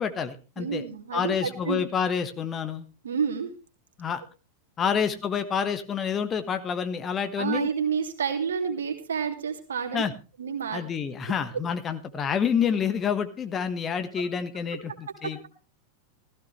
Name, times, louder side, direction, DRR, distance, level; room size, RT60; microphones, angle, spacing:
voice 1, 0.0-0.8 1.1-2.8 4.0-4.2 4.8-7.7 9.9-10.1 10.7-15.5, left 7 dB, 25° left, 9 dB, 1.3 m, -28 dB
voice 2, 0.6-1.8 3.0-3.5 7.4-10.0 10.4-10.8 11.5-11.6 15.2-15.3, right 6 dB, 65° right, 4 dB, 2.5 m, -29 dB
15.5 x 14.5 x 3.3 m, 0.33 s
figure-of-eight pair, 90°, 0 cm